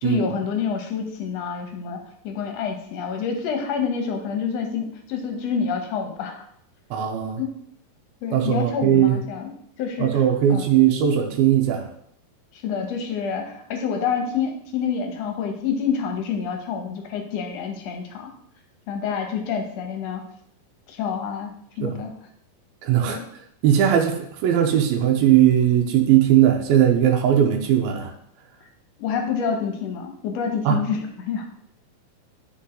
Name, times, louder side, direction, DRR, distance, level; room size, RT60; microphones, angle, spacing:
voice 1, 0.0-6.4 7.4-7.6 8.2-9.5 9.8-10.2 10.5-10.7 12.5-18.3 18.9-20.2 20.9-21.5 21.8-22.1 23.1-23.3 29.0-31.5, left 6 dB, 70° left, 4 dB, 1.7 m, -27 dB
voice 2, 6.9-7.4 8.3-9.2 10.0-11.9 21.8-22.0 22.8-23.2 23.6-28.1 30.7-30.8, right 10 dB, 90° right, 2 dB, 2.7 m, -19 dB
12.0 x 4.3 x 3.8 m, 0.70 s
omnidirectional pair, 4.2 m